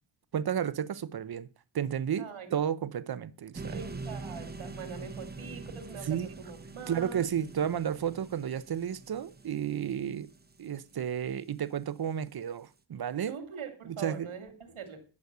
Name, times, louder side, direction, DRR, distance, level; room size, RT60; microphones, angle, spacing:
voice 1, 0.3-1.5 1.7-2.3 2.5-3.8 6.1-6.3 6.9-10.3 10.6-13.3 13.8-14.3, right 9 dB, 50° right, 0.7 m, -32 dB
voice 2, 2.2-2.5 3.7-7.3 13.3-15.0, right 6 dB, 85° right, 2.5 m, -43 dB
sound 1, 3.6-11.6, right 3 dB, 20° right, 0.9 m, -44 dB
10.5 x 6.4 x 6.7 m
wide cardioid pair, 120°, 48 cm